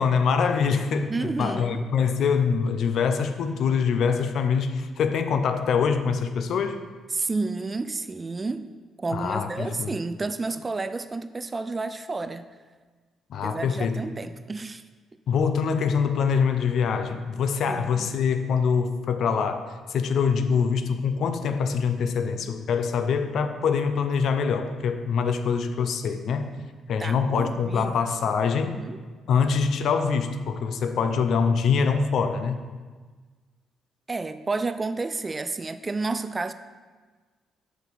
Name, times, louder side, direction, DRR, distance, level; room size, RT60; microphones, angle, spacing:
voice 1, 0.0-6.8 9.1-10.0 13.3-14.0 15.3-26.6 26.9-28.8 29.3-32.7, left 6 dB, 70° left, 9 dB, 0.6 m, -24 dB
voice 2, 1.1-1.8 7.1-8.7 9.0-12.4 13.4-14.8 17.7-18.1 27.0-28.0 28.6-29.0 34.1-36.5, right 3 dB, 25° right, 12 dB, 0.4 m, -31 dB
5.8 x 5.4 x 5.9 m, 1.4 s
cardioid pair, 90°, 0 cm